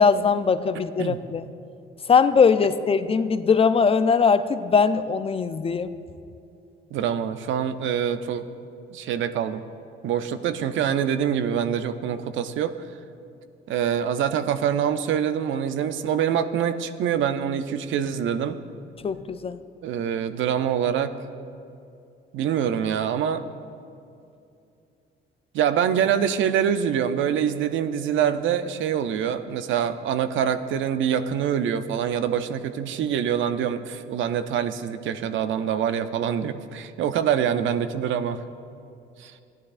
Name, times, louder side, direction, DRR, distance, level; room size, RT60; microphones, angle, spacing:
voice 1, 0.0-1.4 2.1-5.9 19.0-19.6, left 5 dB, 30° left, 12 dB, 0.4 m, -20 dB
voice 2, 6.9-8.4 8.9-9.6 10.0-12.8 13.7-18.6 19.8-21.1 22.3-23.4 25.5-38.4 39.2-39.3, right 8 dB, 75° right, 11 dB, 0.5 m, -25 dB
14.5 x 10.5 x 2.5 m, 2.5 s
cardioid pair, 90°, 20 cm